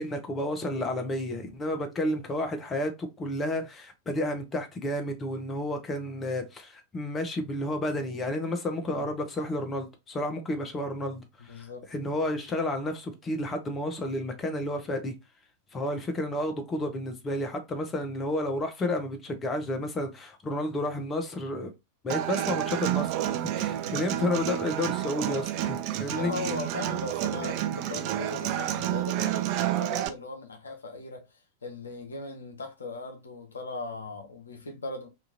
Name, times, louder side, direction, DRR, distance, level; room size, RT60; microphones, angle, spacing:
voice 1, 0.0-11.6 11.9-15.1 15.7-21.7 22.0-26.3, left 1 dB, 20° left, 0.6 m, -31 dB
voice 2, 11.4-11.9 23.9-24.1 26.0-31.3 31.6-35.1, left 3 dB, 70° left, 0.6 m, -38 dB
Human voice / Acoustic guitar, 22.1-30.1, right 12 dB, 45° right, 0.3 m, -30 dB
2.8 x 2.4 x 2.6 m
figure-of-eight pair, 90°, 0 cm